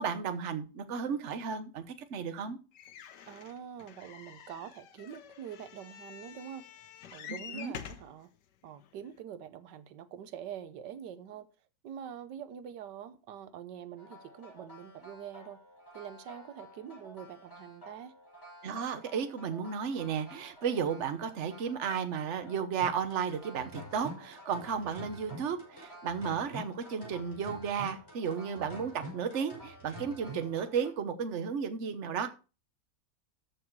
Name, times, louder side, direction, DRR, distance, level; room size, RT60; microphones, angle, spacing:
voice 1, 0.0-1.8 2.1-2.6 7.5-7.7 18.6-32.3, right 6 dB, 50° right, 1.2 m, -33 dB
sound 1, 2.7-8.1 8.8-8.9 9.2-9.3, left 9 dB, 80° left, 1.5 m, -47 dB
voice 2, 3.3-6.7 7.1-8.3 8.6-11.5 11.8-15.6 15.9-18.1, right 9 dB, 90° right, 1.4 m, -45 dB
sound 2, 14.0-30.9, right 1 dB, 10° left, 5.9 m, -49 dB
13.5 x 5.0 x 4.6 m
omnidirectional pair, 1.8 m